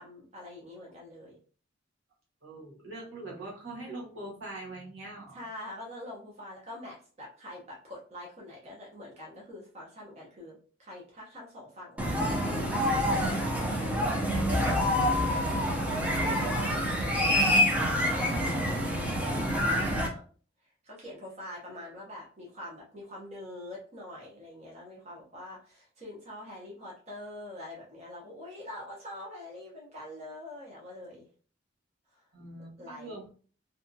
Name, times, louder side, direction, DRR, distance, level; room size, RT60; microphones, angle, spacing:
voice 1, 0.0-1.4 5.3-13.1 15.1-15.7 16.2-16.6 16.9-17.6 18.3-18.8 19.6-20.2 20.8-31.3 32.1-32.2 32.8-33.2, left 1 dB, 35° right, -4 dB, 0.8 m, -45 dB
voice 2, 2.4-5.4 14.3-15.4 16.7-17.4 32.3-33.3, right 2 dB, 85° right, -4 dB, 1.3 m, -43 dB
sound 1, 12.0-20.1, left 1 dB, 10° right, 0.5 m, -27 dB
2.7 x 2.3 x 2.6 m, 0.41 s
head